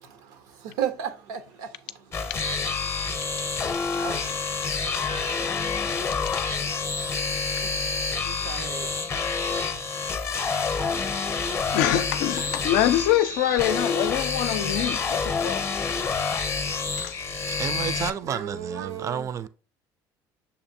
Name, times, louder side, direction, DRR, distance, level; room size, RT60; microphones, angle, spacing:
voice 1, 0.8-1.7 4.0-4.2 5.1-5.2 7.6-7.8 8.3-8.9 10.2-11.3 11.8-12.0 13.5-13.6 14.4-14.5 14.8-14.9 18.2-19.3, right 8 dB, 90° right, 0.6 m, -35 dB
sound 1, 2.1-18.1, left 4 dB, 30° left, 0.6 m, -28 dB
voice 2, 11.7-15.6 17.0-17.1, left 12 dB, 85° left, 0.4 m, -25 dB
voice 3, 17.2-19.5, right 8 dB, 35° right, 0.4 m, -32 dB
6.7 x 2.5 x 2.6 m
supercardioid pair, 95°, 9 cm